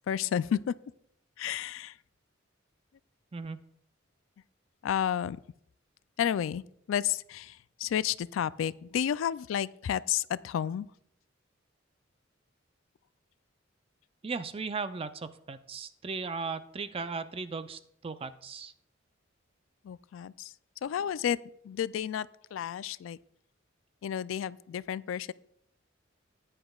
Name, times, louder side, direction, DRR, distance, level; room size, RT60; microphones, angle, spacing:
voice 1, 0.1-0.7 1.4-2.0 4.8-5.4 6.2-6.6 6.9-10.9 19.8-20.5 20.8-21.4 21.6-23.2 24.0-25.3, left 9 dB, 80° left, 18 dB, 0.3 m, -31 dB
voice 2, 14.2-18.7, right 4 dB, 30° right, 12 dB, 0.4 m, -37 dB
15.0 x 9.9 x 2.3 m, 0.72 s
head